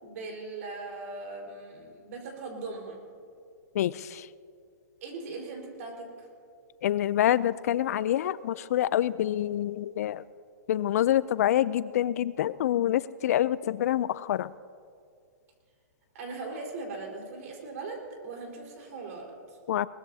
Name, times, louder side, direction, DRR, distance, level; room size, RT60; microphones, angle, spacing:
voice 1, 0.0-3.0 5.0-6.3 16.1-19.6, right 3 dB, 50° right, 0 dB, 4.4 m, -39 dB
voice 2, 3.8-4.3 6.8-10.2 10.7-14.5 19.7-19.9, left 12 dB, 55° left, 18 dB, 0.4 m, -26 dB
22.0 x 20.0 x 2.8 m, 2.3 s
hypercardioid pair, 160°, 10 cm